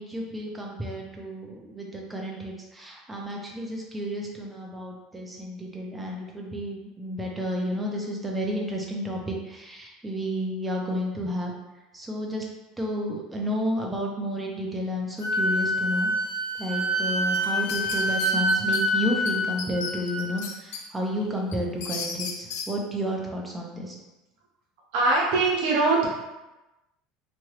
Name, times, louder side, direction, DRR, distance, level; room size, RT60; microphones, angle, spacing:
voice 1, 0.0-11.5 11.9-12.4 12.8-16.1 16.6-24.0, equal, 5° right, -2 dB, 0.5 m, -31 dB
Wind instrument woodwind instrument, 15.2-20.4, equal, 55° left, 1.1 m, -26 dB
sound 1, 17.3-18.8 19.3-19.4 19.6-20.8 21.2-22.7, left 5 dB, 80° left, 0.4 m, -34 dB
voice 2, 24.9-26.1, right 3 dB, 75° right, -3 dB, 0.8 m, -22 dB
2.9 x 2.3 x 3.1 m, 1.0 s
cardioid pair, 150°, 0 cm